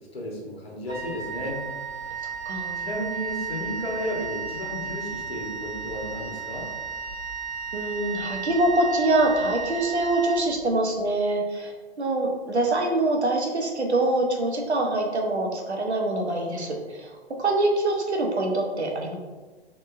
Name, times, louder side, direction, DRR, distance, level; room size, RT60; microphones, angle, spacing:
voice 1, 0.1-1.6 2.8-6.7, left 1 dB, 65° left, -2 dB, 1.1 m, -33 dB
Wind instrument woodwind instrument, 0.9-11.0, right 6 dB, ahead, 0.6 m, -34 dB
voice 2, 2.5-2.8 7.7-11.7 12.0-19.2, right 2 dB, 80° right, 1 dB, 0.8 m, -24 dB
3.7 x 2.9 x 2.4 m, 1.3 s
figure-of-eight pair, 120°, 33 cm